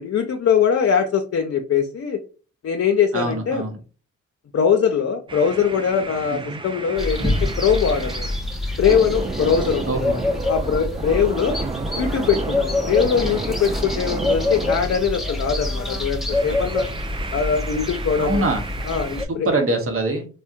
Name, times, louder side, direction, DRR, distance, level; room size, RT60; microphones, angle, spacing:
voice 1, 0.0-2.2 2.6-3.7 4.5-8.3 8.8-9.9 10.5-11.6 11.9-16.8 17.3-18.4 18.9-19.5, left 7 dB, 50° left, 3 dB, 0.6 m, -21 dB
voice 2, 3.1-3.8 6.3-6.6 9.9-10.2 11.6-11.9 18.2-18.7 19.3-20.3, right 2 dB, 45° right, 5 dB, 0.9 m, -24 dB
sound 1, 5.3-8.4 8.9-15.5 16.2-19.3, right 4 dB, 15° right, 0.3 m, -33 dB
sound 2, 7.0-19.2, left 2 dB, ahead, 0.7 m, -26 dB
3.4 x 2.1 x 2.6 m, 0.36 s
supercardioid pair, 50°, 32 cm